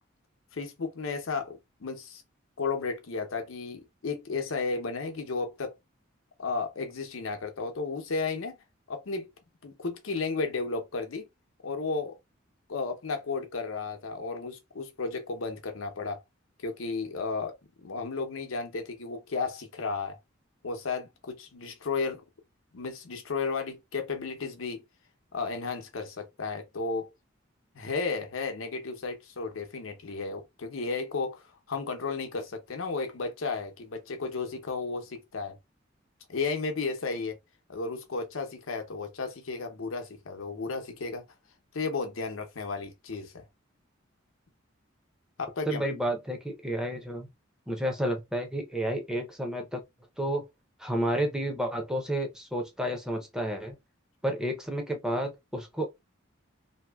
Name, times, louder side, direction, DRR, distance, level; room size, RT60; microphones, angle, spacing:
voice 1, 0.5-2.2 2.6-5.7 6.4-8.6 8.9-9.3 9.6-11.3 11.6-12.2 12.7-16.2 16.6-17.6 17.8-20.2 20.6-22.2 22.7-24.8 25.3-27.1 27.7-35.6 36.3-37.4 37.7-41.2 41.7-43.4 45.4-45.8, left 4 dB, 90° left, 0.7 m, -33 dB
voice 2, 45.7-47.3 47.7-49.8 50.2-50.5 50.8-53.7 54.2-55.9, right 1 dB, 5° right, 0.6 m, -31 dB
2.8 x 2.5 x 2.3 m
head